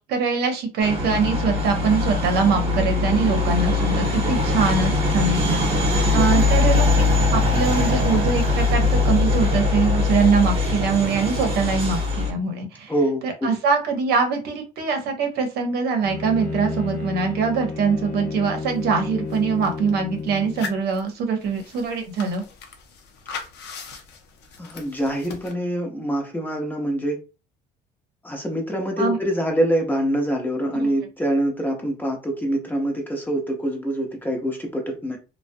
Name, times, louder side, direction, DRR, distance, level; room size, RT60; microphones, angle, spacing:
voice 1, 0.1-5.7 6.1-7.1 7.3-12.9 13.2-22.4 29.0-29.2 30.7-30.9, right 5 dB, 70° right, 4 dB, 0.7 m, -23 dB
sound 1, 0.8-12.3, left 3 dB, 35° right, 0.9 m, -21 dB
voice 2, 6.1-6.5 12.9-13.5 24.6-27.2 28.2-35.2, right 1 dB, 10° left, 1 dB, 0.7 m, -25 dB
Bowed string instrument, 16.0-20.8, left 3 dB, 50° left, 0.8 m, -31 dB
sound 2, 18.7-18.8 19.0-19.9 20.4-25.5, left 5 dB, 80° left, 0.6 m, -39 dB
2.3 x 2.1 x 2.5 m, 0.30 s
cardioid pair, 110°, 17 cm